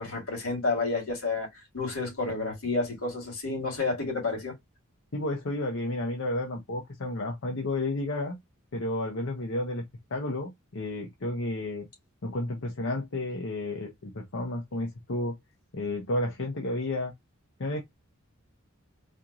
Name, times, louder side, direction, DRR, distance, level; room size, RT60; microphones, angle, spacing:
voice 1, 0.0-1.5 1.7-4.5, left 3 dB, 90° left, 2.5 m, -30 dB
voice 2, 5.1-8.4 8.7-9.9 10.1-11.9 12.2-15.4 15.7-17.1 17.6-17.8, left 2 dB, 60° left, 0.9 m, -31 dB
4.3 x 2.5 x 3.0 m
head